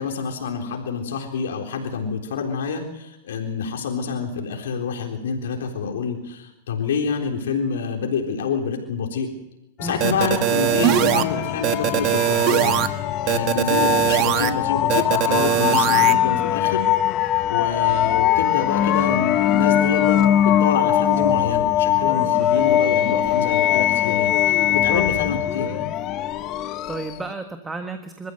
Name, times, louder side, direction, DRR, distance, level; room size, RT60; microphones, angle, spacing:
voice 1, 0.0-9.3 9.8-12.8 13.2-16.9 17.2-25.7, left 6 dB, 80° left, 1 dB, 3.8 m, -27 dB
sound 1, 9.8-27.3, left 11 dB, 35° left, 1.2 m, -21 dB
voice 2, 9.8-10.2 24.9-25.1 26.5-28.3, right 3 dB, 10° right, 6 dB, 1.5 m, -33 dB
sound 2, 10.0-11.2 11.6-12.9 13.3-14.5 14.9-16.1, right 14 dB, 40° right, 1.4 m, -20 dB
27.0 x 14.5 x 8.0 m, 0.92 s
hypercardioid pair, 140°, 0 cm